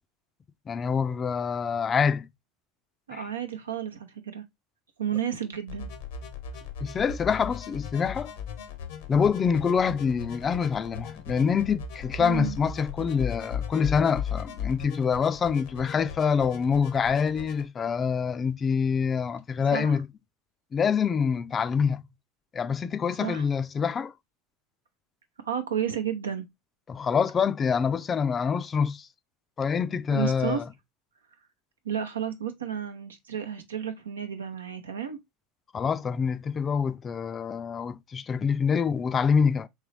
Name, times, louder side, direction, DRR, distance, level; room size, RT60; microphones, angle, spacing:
voice 1, 0.7-2.3 3.1-3.2 6.8-8.3 9.1-20.1 20.7-22.1 22.5-24.1 26.9-29.1 29.6-30.6 35.7-39.7, left 6 dB, 30° left, 0.4 m, -26 dB
voice 2, 3.1-4.4 5.0-5.9 12.2-12.6 19.6-20.0 23.2-23.5 25.4-26.5 30.1-30.6 31.8-35.2, right 9 dB, 80° right, 0.7 m, -32 dB
sound 1, 5.7-17.7, left 7 dB, 65° left, 0.7 m, -37 dB
3.7 x 3.0 x 3.2 m
figure-of-eight pair, 75°, 0 cm